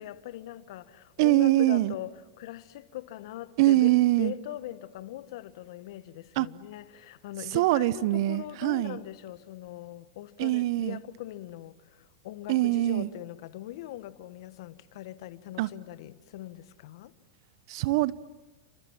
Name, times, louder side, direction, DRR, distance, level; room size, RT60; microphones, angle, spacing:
voice 1, 0.0-17.1, left 14 dB, 65° left, 1.4 m, -41 dB
voice 2, 1.2-1.9 3.6-4.3 6.4-6.5 7.5-9.0 10.4-11.0 12.5-13.1 15.6-15.7 17.7-18.1, right 16 dB, 60° right, 0.9 m, -23 dB
29.0 x 27.0 x 7.4 m
hypercardioid pair, 105°, 3 cm